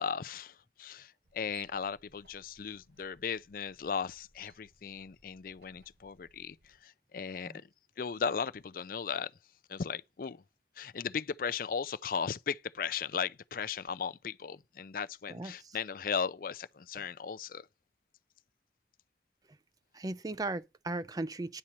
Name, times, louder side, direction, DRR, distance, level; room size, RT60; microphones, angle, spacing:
voice 1, 0.0-7.5 8.0-9.3 9.7-10.4 10.8-17.7, left 6 dB, 50° left, 0.4 m, -36 dB
sound 1, 1.2-6.8, right 5 dB, 75° right, 4.0 m, -62 dB
voice 2, 15.3-15.7 19.9-21.6, right 2 dB, 20° right, 0.4 m, -37 dB
9.7 x 4.3 x 7.4 m
head